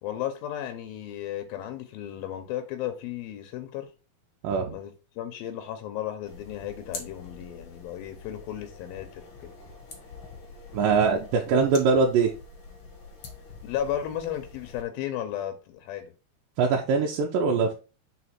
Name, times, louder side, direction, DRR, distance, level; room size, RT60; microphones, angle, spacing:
voice 1, 0.0-3.9 4.7-9.5 13.6-16.1 17.6-17.7, left 11 dB, 85° left, 2.6 m, -34 dB
voice 2, 4.4-4.7 10.7-12.3 16.6-17.7, right 5 dB, 75° right, 2.3 m, -22 dB
sound 1, 6.2-14.8, left 4 dB, 50° left, 1.8 m, -45 dB
5.0 x 4.8 x 4.2 m
omnidirectional pair, 4.1 m